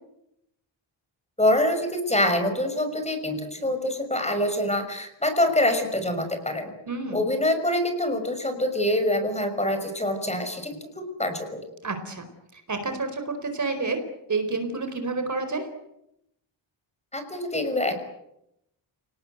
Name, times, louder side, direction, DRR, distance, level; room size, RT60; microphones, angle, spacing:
voice 1, 1.4-6.7 7.1-11.6 17.1-18.0, left 1 dB, 15° left, 7 dB, 6.1 m, -25 dB
voice 2, 6.9-7.3 11.8-12.3 12.5-14.0 14.3-15.7, right 3 dB, 35° right, 8 dB, 4.6 m, -29 dB
29.0 x 19.0 x 9.3 m, 0.83 s
cardioid pair, 105°, 50 cm